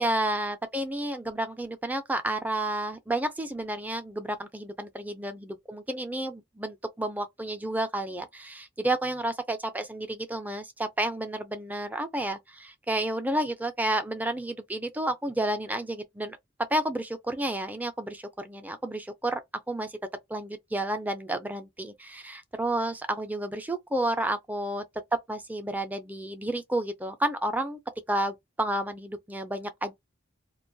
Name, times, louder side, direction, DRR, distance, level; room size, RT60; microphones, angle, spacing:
voice 1, 0.0-16.4 16.7-19.4 19.7-19.9 20.3-24.8 25.3-27.8 28.1-30.1, right 1 dB, 10° right, 0.4 m, -31 dB
2.3 x 2.2 x 2.6 m
head